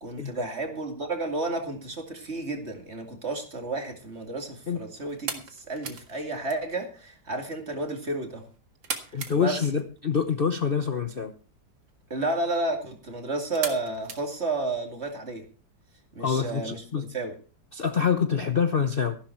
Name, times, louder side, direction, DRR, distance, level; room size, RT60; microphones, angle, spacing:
voice 1, 0.0-8.5 9.1-9.7 12.1-15.4 16.1-17.3, right 2 dB, 35° right, 4 dB, 2.7 m, -32 dB
sound 1, 3.7-15.1, right 6 dB, 85° right, 2.6 m, -42 dB
voice 2, 9.1-11.3 16.2-17.0 17.7-19.2, left 6 dB, 40° left, 8 dB, 1.0 m, -26 dB
14.5 x 12.0 x 4.5 m, 0.36 s
omnidirectional pair, 2.0 m